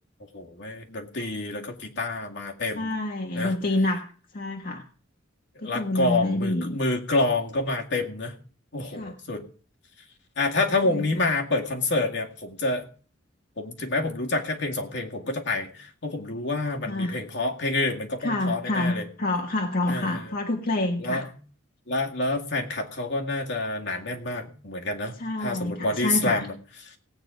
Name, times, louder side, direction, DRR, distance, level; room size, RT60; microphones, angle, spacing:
voice 1, 0.3-2.9 3.3-3.5 5.6-8.3 8.7-9.4 10.4-12.9 13.6-19.1 19.9-20.3 21.0-21.3 21.9-26.6 26.9-27.0, left 2 dB, 65° left, 2 dB, 2.1 m, -28 dB
voice 2, 2.7-4.1 4.3-4.8 5.6-6.8 8.9-9.1 10.9-11.0 16.9-17.2 18.2-21.2 25.2-26.5, left 2 dB, 50° left, 2 dB, 1.4 m, -27 dB
17.5 x 8.7 x 5.2 m, 0.42 s
head